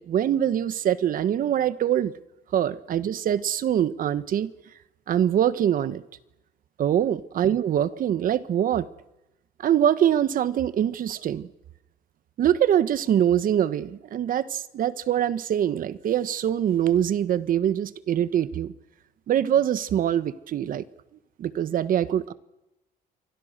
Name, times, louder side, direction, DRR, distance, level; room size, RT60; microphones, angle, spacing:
voice 1, 0.0-2.1 2.5-4.5 5.1-6.0 6.8-8.9 9.6-11.5 12.4-18.7 19.3-20.8 21.4-22.3, right 10 dB, 55° right, 1.4 m, -24 dB
28.0 x 23.5 x 6.8 m
cardioid pair, 110°, 17 cm